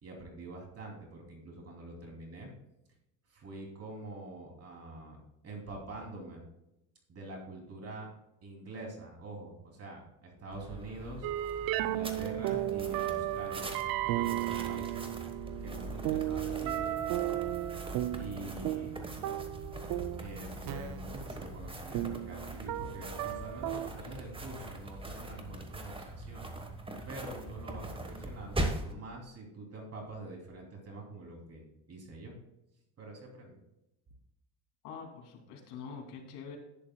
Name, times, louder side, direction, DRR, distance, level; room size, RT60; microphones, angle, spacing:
voice 1, 0.0-2.5 3.3-5.2 5.4-6.4 7.1-8.1 8.4-11.3 11.8-13.7 14.0-15.0 15.6-17.0 18.2-19.0 20.2-26.5 27.1-32.3 33.0-33.6, right 2 dB, 35° right, 0 dB, 2.9 m, -45 dB
sound 1, 10.5-28.9, right 1 dB, 15° right, 1.2 m, -42 dB
sound 2, 11.2-23.9, right 14 dB, 55° right, 0.6 m, -35 dB
voice 2, 34.8-36.6, left 6 dB, 70° left, 1 dB, 2.7 m, -45 dB
11.0 x 10.5 x 2.3 m, 0.88 s
cardioid pair, 115°, 42 cm